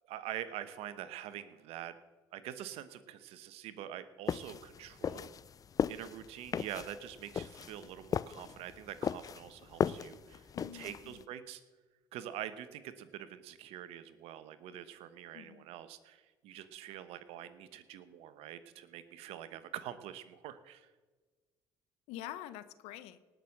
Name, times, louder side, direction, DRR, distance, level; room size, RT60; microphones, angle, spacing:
voice 1, 0.1-2.0 2.3-5.3 5.9-10.5 10.7-11.6 12.1-20.9, right 11 dB, 70° right, 12 dB, 1.0 m, -45 dB
sound 1, 4.3-11.2, left 7 dB, 35° left, 0.4 m, -36 dB
voice 2, 10.5-11.2 15.3-15.7 22.1-23.2, left 12 dB, 75° left, 13 dB, 0.9 m, -46 dB
18.5 x 6.3 x 6.5 m, 1.3 s
supercardioid pair, 70°, 11 cm